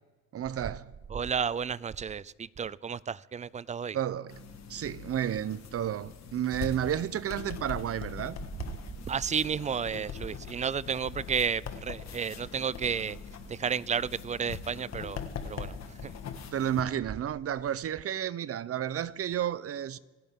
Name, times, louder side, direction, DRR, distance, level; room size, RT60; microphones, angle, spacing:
voice 1, 0.3-1.0 3.9-8.4 16.5-20.0, right 10 dB, 50° right, 0.7 m, -32 dB
voice 2, 1.1-4.0 9.1-13.2 13.5-16.2, right 6 dB, 25° right, 0.4 m, -32 dB
sound 1, 4.3-16.8, left 6 dB, 60° left, 1.6 m, -42 dB
27.0 x 10.0 x 3.7 m
cardioid pair, 90°, 30 cm